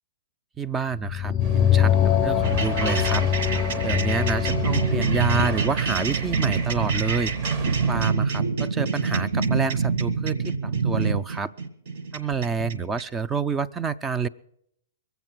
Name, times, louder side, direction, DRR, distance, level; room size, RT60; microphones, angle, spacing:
voice 1, 0.6-3.2 3.8-7.3 7.9-11.5 12.1-14.3, right 5 dB, 15° right, 16 dB, 0.4 m, -28 dB
sound 1, 1.0-5.6, left 10 dB, 30° left, 0.7 m, -23 dB
sound 2, 1.4-8.1, right 5 dB, 40° right, 0.8 m, -34 dB
sound 3, 2.4-13.0, right 4 dB, 70° right, 1.5 m, -26 dB
22.0 x 8.1 x 6.1 m, 0.74 s
hypercardioid pair, 130°, 0 cm